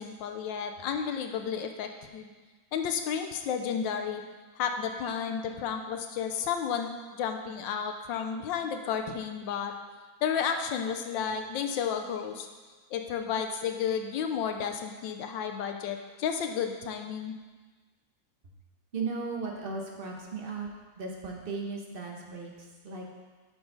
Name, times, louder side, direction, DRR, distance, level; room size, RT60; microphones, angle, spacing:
voice 1, 0.0-2.3 2.7-4.2 4.6-9.7 10.2-12.5 12.9-17.4, left 7 dB, 80° left, 5 dB, 1.3 m, -32 dB
voice 2, 18.9-20.7 21.0-23.0, right 4 dB, 35° right, 0 dB, 1.0 m, -36 dB
8.8 x 6.2 x 3.9 m, 1.3 s
omnidirectional pair, 2.1 m